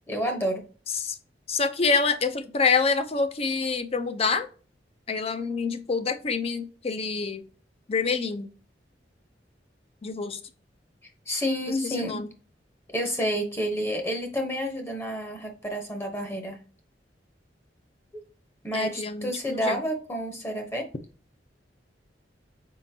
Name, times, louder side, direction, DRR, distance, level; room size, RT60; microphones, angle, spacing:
voice 1, 0.1-0.6 11.3-12.2 12.9-16.6 18.6-20.9, equal, 15° left, 0.8 m, -29 dB
voice 2, 1.5-4.5 5.1-7.4 7.9-8.5 10.0-10.4 12.0-12.3 18.7-19.8, left 4 dB, 35° left, 0.5 m, -26 dB
5.1 x 3.7 x 2.7 m
head